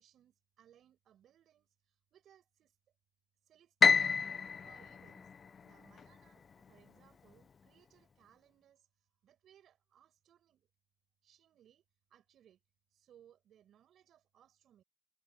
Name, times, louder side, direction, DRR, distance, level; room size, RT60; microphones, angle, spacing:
voice 1, 0.0-2.8 3.4-4.2 4.6-5.3 5.6-10.7 11.2-11.8 12.1-12.6 12.9-14.8, right 10 dB, 70° right, 6.7 m, -66 dB
Piano, 3.8-6.1, left 5 dB, 45° left, 0.3 m, -29 dB
cardioid pair, 90°, 0 cm